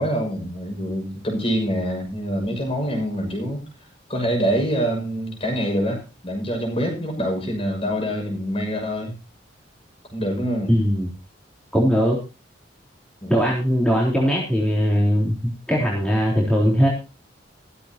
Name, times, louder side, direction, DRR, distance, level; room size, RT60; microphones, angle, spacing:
voice 1, 0.0-3.6 4.1-9.1 10.1-10.7 13.2-13.3, equal, 30° left, 3 dB, 6.4 m, -25 dB
voice 2, 10.7-11.1 11.7-12.2 13.3-16.9, equal, 5° left, -4 dB, 3.8 m, -20 dB
15.5 x 14.5 x 2.9 m, 0.29 s
head